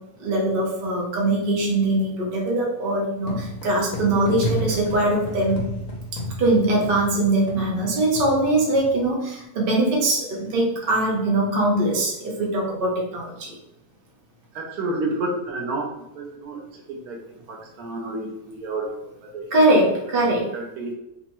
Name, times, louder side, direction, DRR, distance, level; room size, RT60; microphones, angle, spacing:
voice 1, 0.2-5.6 6.4-13.5 19.5-20.4, right 2 dB, 45° right, -2 dB, 0.8 m, -22 dB
sound 1, 3.2-9.0, left 1 dB, 75° left, 1.2 m, -32 dB
voice 2, 14.5-15.9 16.1-17.2 17.5-18.9 19.2-19.5 20.5-20.9, right 2 dB, 75° right, 0 dB, 1.0 m, -30 dB
3.4 x 2.0 x 2.9 m, 0.86 s
omnidirectional pair, 1.7 m